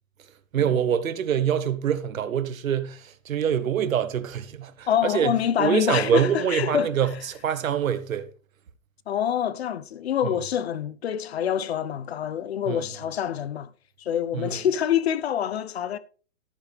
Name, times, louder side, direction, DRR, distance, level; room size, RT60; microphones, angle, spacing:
voice 1, 0.5-8.3 10.2-10.3 12.7-12.8 14.3-14.6, right 8 dB, 70° right, 1.3 m, -25 dB
voice 2, 4.9-7.0 9.1-13.7 14.0-16.0, left 9 dB, 50° left, 0.8 m, -26 dB
14.0 x 8.8 x 3.5 m
hypercardioid pair, 160°, 42 cm